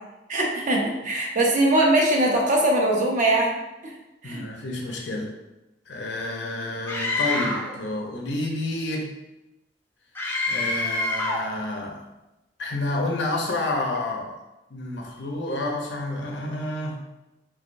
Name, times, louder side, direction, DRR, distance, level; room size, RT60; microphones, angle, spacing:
voice 1, 0.3-3.6 3.8-3.9 4.2-4.5, right 1 dB, 45° right, 0 dB, 0.7 m, -21 dB
voice 2, 4.2-5.3 5.9-9.1 10.5-12.0 12.6-14.3 14.7-17.0, left 2 dB, 90° left, 1 dB, 0.7 m, -29 dB
Screaming, 6.9-7.7 10.2-11.5, left 2 dB, 15° left, 0.5 m, -26 dB
3.5 x 3.3 x 2.5 m, 0.98 s
head